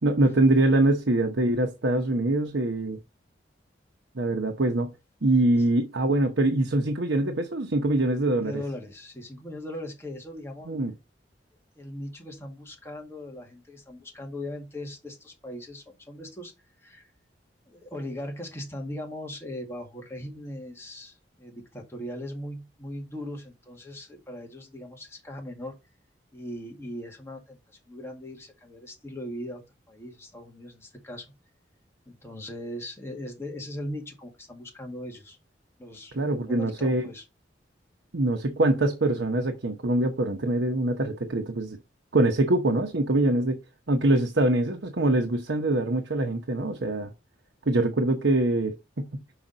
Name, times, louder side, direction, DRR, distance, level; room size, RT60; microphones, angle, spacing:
voice 1, 0.0-3.0 4.1-4.9 5.2-8.5 10.6-10.9 36.1-37.1 38.1-41.8 42.1-43.6 43.9-47.1 47.7-49.2, right 2 dB, 80° right, 0.9 m, -24 dB
voice 2, 8.4-10.8 11.7-16.5 16.8-17.1 17.7-25.7 26.3-29.6 29.9-31.3 32.1-35.4 35.8-37.2, left 1 dB, 15° left, 1.8 m, -39 dB
5.9 x 4.9 x 3.9 m
head